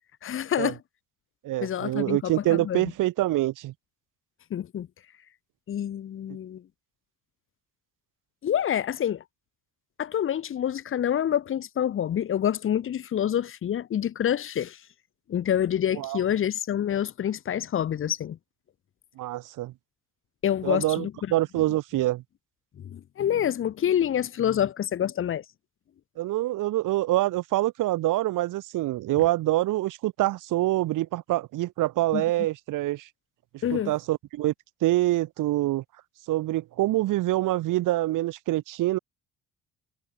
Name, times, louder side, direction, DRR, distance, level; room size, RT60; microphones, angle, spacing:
voice 1, 0.2-0.8 1.6-2.9 4.5-4.9 5.7-6.6 8.4-9.2 10.0-14.8 15.3-18.4 20.4-21.1 22.8-25.4 32.1-32.2 33.6-33.9, left 10 dB, 40° left, 1.2 m, -27 dB
voice 2, 1.4-3.7 15.9-16.2 19.2-19.7 20.6-22.2 26.2-33.1 33.7-34.5 34.8-35.8 36.3-39.0, right 16 dB, 80° right, 1.6 m, -25 dB
cardioid pair, 155°, 31 cm